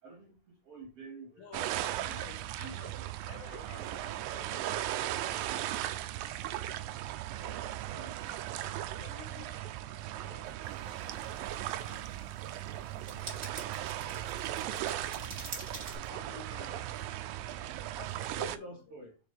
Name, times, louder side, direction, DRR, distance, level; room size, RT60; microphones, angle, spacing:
voice 1, 0.0-1.6 2.0-3.0 7.8-8.3 9.3-9.6 17.9-19.2, right 2 dB, 45° right, 2.1 m, -49 dB
voice 2, 1.4-6.0 6.6-6.9 7.3-8.1 8.8-12.4 12.7-15.5 16.0-17.9 18.3-18.8, left 7 dB, 75° left, 2.6 m, -55 dB
sound 1, 1.5-18.6, right 13 dB, 80° right, 2.1 m, -37 dB
sound 2, 10.6-15.9, right 3 dB, 30° right, 1.5 m, -47 dB
6.5 x 5.1 x 3.5 m
omnidirectional pair, 4.5 m